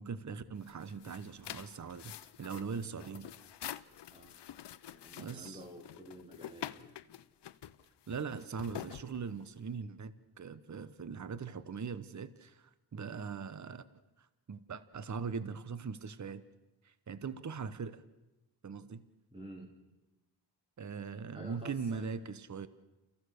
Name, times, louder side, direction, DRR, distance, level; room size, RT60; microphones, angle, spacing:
voice 1, 0.0-3.3 5.2-5.6 8.1-13.8 14.2-16.4 16.8-18.0 18.6-19.1 20.8-22.7, right 5 dB, 45° right, 15 dB, 1.0 m, -41 dB
sound 1, 0.6-9.7, left 11 dB, 80° left, 0.8 m, -47 dB
voice 2, 4.9-7.1 19.3-19.7 21.3-22.1, equal, 15° right, -1 dB, 3.3 m, -50 dB
29.0 x 15.5 x 6.5 m, 1.0 s
cardioid pair, 75°, 41 cm